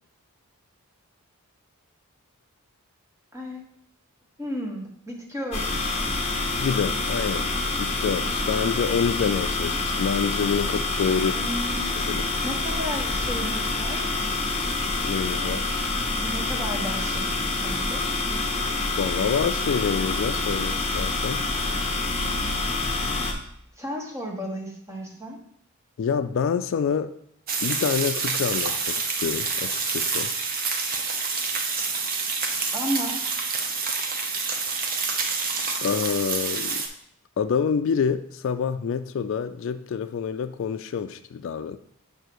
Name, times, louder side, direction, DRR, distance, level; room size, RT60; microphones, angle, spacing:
voice 1, 3.3-3.6 4.4-6.2 11.3-11.9 12.4-14.2 15.4-15.6 16.2-18.1 23.8-25.4 32.7-33.4, equal, 15° right, 1.1 m, -34 dB
sound 1, 5.5-23.3, left 3 dB, 30° left, 1.1 m, -27 dB
voice 2, 6.6-7.5 7.8-11.4 12.1-12.3 15.0-15.6 19.0-21.4 26.0-27.1 27.6-30.3 35.8-36.8 37.4-41.8, left 6 dB, 60° left, 0.3 m, -27 dB
sound 2, 27.5-36.9, right 4 dB, 40° right, 0.7 m, -27 dB
7.9 x 2.7 x 6.1 m
head